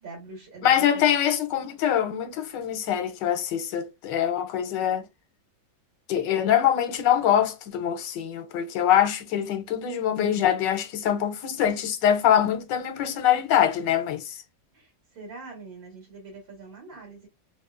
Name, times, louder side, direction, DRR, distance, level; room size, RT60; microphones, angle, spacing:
voice 1, 0.0-1.0 14.7-17.3, right 3 dB, 80° right, 2.2 m, -43 dB
voice 2, 0.6-5.0 6.1-14.3, left 10 dB, 75° left, 1.3 m, -24 dB
4.1 x 2.3 x 2.4 m
omnidirectional pair, 2.0 m